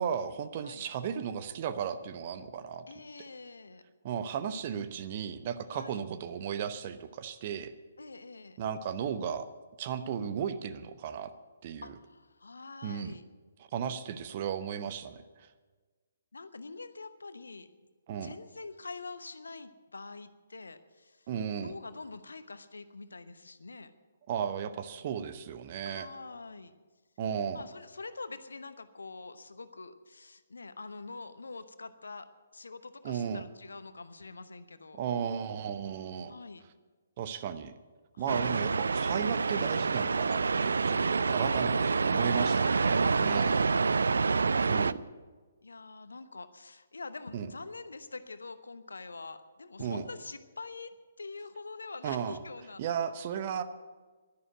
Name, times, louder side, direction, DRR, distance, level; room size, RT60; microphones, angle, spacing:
voice 1, 0.0-2.9 4.0-7.7 8.6-9.5 9.8-11.3 11.6-11.9 12.8-13.1 13.7-15.2 18.1-18.3 21.3-21.7 24.3-26.1 27.2-27.6 33.0-33.5 35.0-36.3 37.2-37.8 38.2-43.6 44.7-45.0 47.3-47.5 49.8-50.1 52.0-52.4 52.8-53.6, right 8 dB, 35° right, 11 dB, 0.9 m, -35 dB
voice 2, 2.9-3.8 5.7-6.0 8.0-8.6 11.8-13.2 16.3-17.7 18.2-21.3 21.6-23.9 25.8-26.7 27.5-35.0 36.3-36.6 38.1-38.6 41.7-44.1 45.6-52.8, left 3 dB, 65° left, 12 dB, 1.0 m, -45 dB
sound 1, 38.3-44.9, right 4 dB, 60° right, 0.4 m, -27 dB
11.5 x 11.0 x 9.1 m, 1.4 s
figure-of-eight pair, 130°, 0 cm